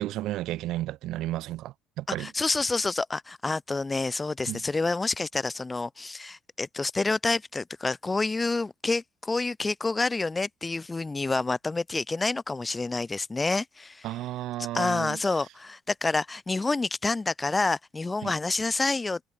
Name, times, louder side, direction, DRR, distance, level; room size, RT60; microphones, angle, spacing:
voice 1, 0.0-2.3 4.5-4.6 14.0-15.2 18.2-18.3, right 15 dB, 65° right, 0.5 m, -33 dB
voice 2, 2.2-14.1 14.7-19.2, left 3 dB, 15° left, 0.4 m, -28 dB
cardioid pair, 155°, 0 cm